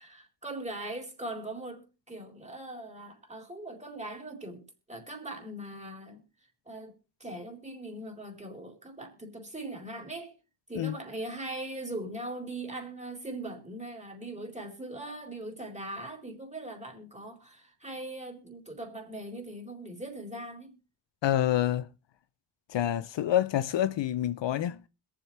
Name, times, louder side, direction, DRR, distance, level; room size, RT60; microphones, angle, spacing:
voice 1, 0.0-4.6 4.9-6.2 6.7-10.3 10.7-20.8, right 1 dB, 15° right, 4.0 m, -40 dB
voice 2, 21.2-21.9 22.7-24.8, left 11 dB, 70° left, 0.7 m, -27 dB
21.5 x 7.6 x 3.3 m
cardioid pair, 75°, 46 cm